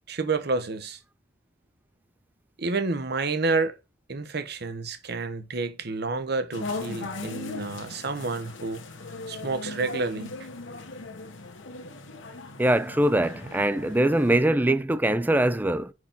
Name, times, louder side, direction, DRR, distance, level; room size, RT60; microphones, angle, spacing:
voice 1, 0.1-1.0 2.6-3.7 4.1-8.8 9.3-10.5, right 3 dB, 55° right, 0.9 m, -29 dB
sound 1, 6.5-14.3, left 3 dB, 75° left, 1.2 m, -38 dB
voice 2, 12.6-15.9, right 1 dB, 10° right, 0.5 m, -22 dB
5.8 x 4.8 x 5.2 m
head